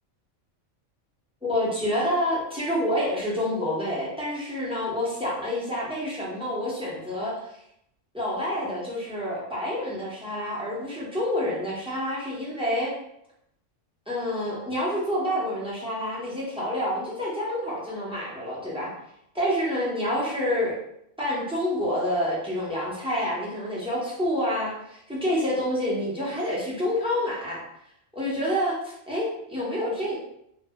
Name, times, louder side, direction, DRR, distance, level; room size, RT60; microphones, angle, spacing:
voice 1, 1.4-7.4 8.1-12.9 14.1-18.9 19.3-20.8 21.2-27.6 28.1-30.1, left 1 dB, 5° right, -6 dB, 0.4 m, -28 dB
2.1 x 2.0 x 3.4 m, 0.76 s
omnidirectional pair, 1.3 m